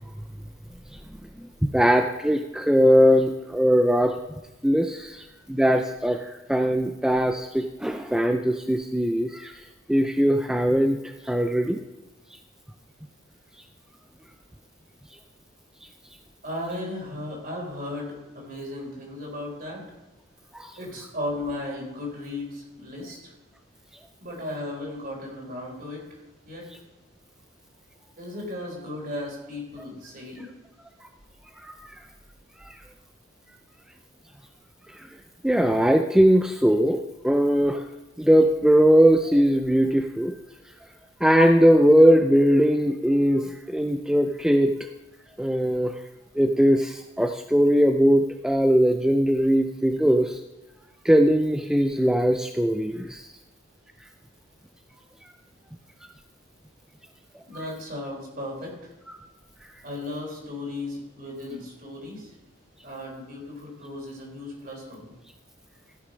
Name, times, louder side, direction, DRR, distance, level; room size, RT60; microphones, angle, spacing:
voice 1, 1.4-4.2 4.6-11.8 20.5-20.8 31.6-32.0 32.6-32.8 34.9-35.2 35.4-37.9 38.2-40.3 41.2-44.7 45.4-46.0 46.3-50.4 51.0-53.4 54.0-54.1 59.1-59.2 59.6-59.8, equal, 5° right, 5 dB, 0.3 m, -20 dB
voice 2, 16.4-19.8 20.8-23.3 24.2-26.2 26.5-26.6 28.2-30.5 57.5-58.9 59.8-62.3 62.8-65.2, left 1 dB, 45° right, -1 dB, 3.8 m, -35 dB
14.5 x 6.5 x 5.2 m, 1.1 s
head